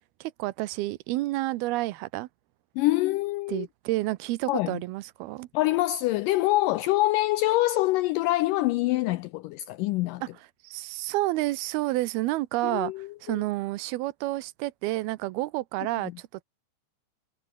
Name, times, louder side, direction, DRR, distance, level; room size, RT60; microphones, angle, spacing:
voice 1, 0.2-2.3 3.5-5.5 10.2-10.3 10.6-16.4, right 18 dB, 85° right, 2.7 m, -30 dB
voice 2, 2.8-3.7 4.5-4.8 5.5-10.2 12.6-13.4, left 17 dB, 90° left, 1.9 m, -25 dB
omnidirectional pair, 4.4 m